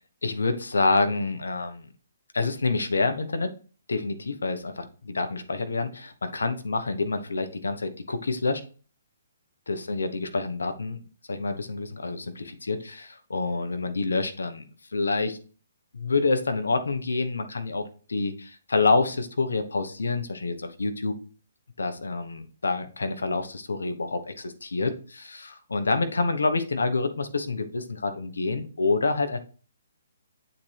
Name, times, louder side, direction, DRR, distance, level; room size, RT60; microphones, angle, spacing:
voice 1, 0.2-1.9 2.3-3.5 3.9-8.6 9.7-11.0 11.3-14.7 14.9-15.4 15.9-21.2 21.8-29.4, left 3 dB, 85° left, 8 dB, 1.2 m, -27 dB
8.5 x 4.5 x 3.4 m, 0.38 s
hypercardioid pair, 145°, 0 cm